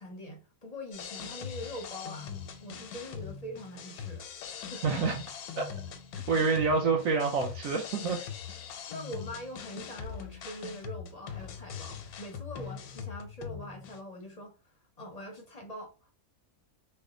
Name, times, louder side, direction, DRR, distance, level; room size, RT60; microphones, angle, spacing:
voice 1, 0.0-2.3 2.6-5.0 8.2-8.3 8.9-14.5 15.0-16.1, equal, 45° left, 0.5 m, -43 dB
sound 1, 0.9-14.0, left 7 dB, 90° left, 1.1 m, -42 dB
voice 2, 4.8-5.2 5.6-5.7 6.3-8.2, right 4 dB, 70° right, 1.1 m, -27 dB
3.3 x 2.1 x 3.6 m
omnidirectional pair, 1.5 m